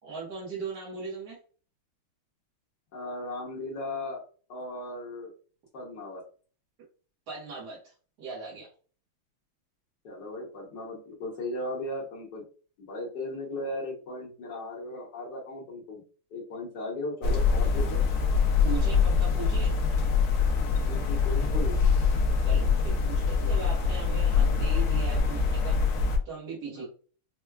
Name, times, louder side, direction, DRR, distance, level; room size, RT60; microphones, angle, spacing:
voice 1, 0.0-1.4 7.3-8.7 18.6-19.8 22.4-25.8 26.2-26.9, right 4 dB, 55° right, -7 dB, 1.5 m, -39 dB
voice 2, 2.9-4.2 4.5-5.3 5.7-6.2 10.0-12.4 12.8-16.0 16.3-18.0 20.7-21.8 26.7-26.9, left 2 dB, 55° left, -3 dB, 1.4 m, -37 dB
sound 1, 17.2-26.2, left 5 dB, 85° left, 0.8 m, -24 dB
4.5 x 2.2 x 2.3 m, 0.39 s
omnidirectional pair, 2.4 m